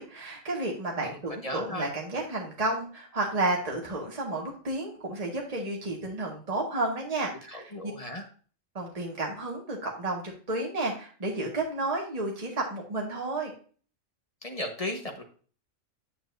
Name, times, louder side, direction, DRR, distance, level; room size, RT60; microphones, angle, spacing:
voice 1, 0.0-7.9 8.8-10.2 10.5-13.5, right 2 dB, 30° right, -1 dB, 1.7 m, -31 dB
voice 2, 1.0-1.9 7.5-8.3 14.4-15.2, left 1 dB, 30° left, 3 dB, 1.3 m, -36 dB
8.6 x 7.0 x 2.6 m, 0.41 s
omnidirectional pair, 1.4 m